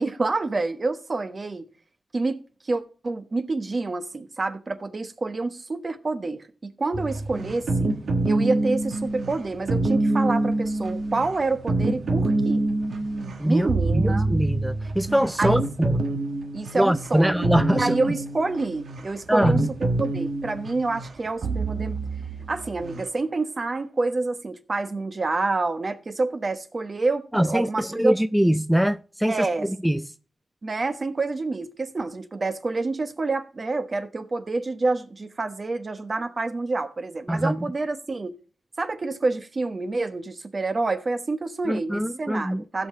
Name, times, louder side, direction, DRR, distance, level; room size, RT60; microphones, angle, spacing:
voice 1, 0.0-1.7 2.1-7.9 8.2-12.7 13.4-14.3 15.4-15.6 16.5-22.0 22.5-28.2 29.3-29.7 30.6-38.3 38.8-42.9, right 3 dB, 50° right, 1.2 m, -28 dB
sound 1, 6.9-23.1, right 2 dB, 80° right, 1.3 m, -26 dB
voice 2, 13.9-16.0 16.7-17.9 19.3-19.7 27.3-30.1 37.3-37.7 41.7-42.6, equal, 5° right, 0.5 m, -23 dB
15.5 x 5.7 x 3.8 m
cardioid pair, 45°, 0 cm